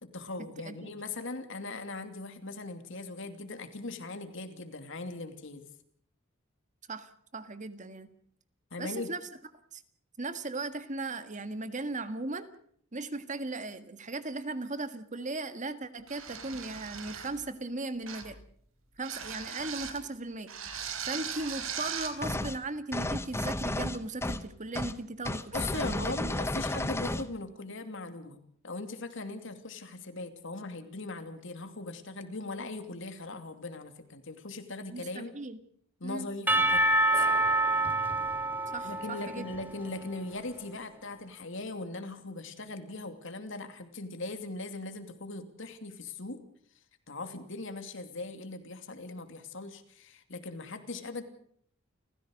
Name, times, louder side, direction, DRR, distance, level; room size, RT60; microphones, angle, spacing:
voice 1, 0.0-5.6 8.7-9.1 25.5-35.3 36.0-36.8 37.1-37.3 38.8-46.4 47.1-51.2, left 2 dB, 65° left, 8 dB, 2.8 m, -40 dB
voice 2, 6.9-8.1 8.8-9.3 9.7-9.8 10.2-12.5 12.9-18.4 19.0-20.5 21.1-26.3 34.9-35.6 36.0-36.3 38.7-39.4, right 2 dB, 40° right, 11 dB, 1.7 m, -37 dB
sound 1, 16.1-17.4 18.1-18.4 19.0-20.0 20.5-22.2, right 7 dB, 90° right, 3.6 m, -39 dB
sound 2, 22.2-22.6 22.9-24.5 24.8-25.0 25.3-27.3, left 1 dB, 15° left, 0.9 m, -32 dB
Percussion / Church bell, 36.5-40.4, right 2 dB, 10° right, 2.1 m, -27 dB
29.5 x 15.5 x 6.5 m, 0.64 s
head